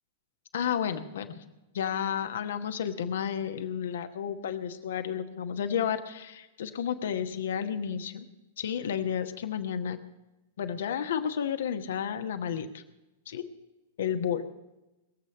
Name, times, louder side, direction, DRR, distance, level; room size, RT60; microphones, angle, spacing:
voice 1, 0.5-1.4 1.7-8.3 8.6-10.0 10.6-12.8 13.3-13.4 14.0-14.4, left 8 dB, 60° left, 8 dB, 1.1 m, -31 dB
22.0 x 7.9 x 5.3 m, 1.0 s
figure-of-eight pair, 100°, 0 cm